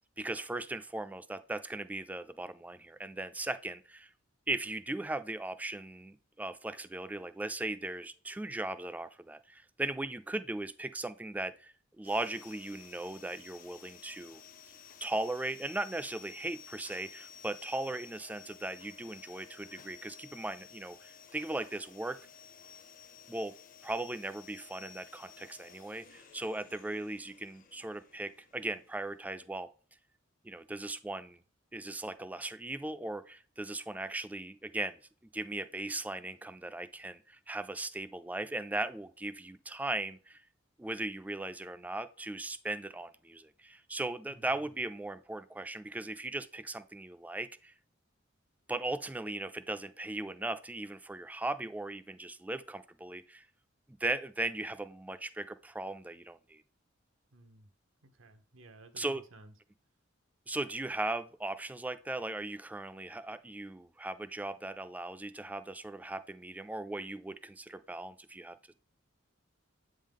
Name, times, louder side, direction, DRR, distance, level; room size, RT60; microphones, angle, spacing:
voice 1, 0.2-4.1 4.5-14.4 15.0-22.2 23.3-23.5 23.8-29.7 30.4-31.4 31.7-35.0 35.3-40.4 40.8-47.7 48.7-53.5 53.9-56.6 59.0-59.2 60.5-68.7, right 2 dB, 10° right, 13 dB, 0.3 m, -38 dB
Vacuum cleaner, 12.0-29.3, left 8 dB, 45° left, 0.7 m, -54 dB
voice 2, 57.3-57.7 58.0-59.5, right 2 dB, 90° right, 8 dB, 0.9 m, -56 dB
8.0 x 3.7 x 3.5 m, 0.41 s
head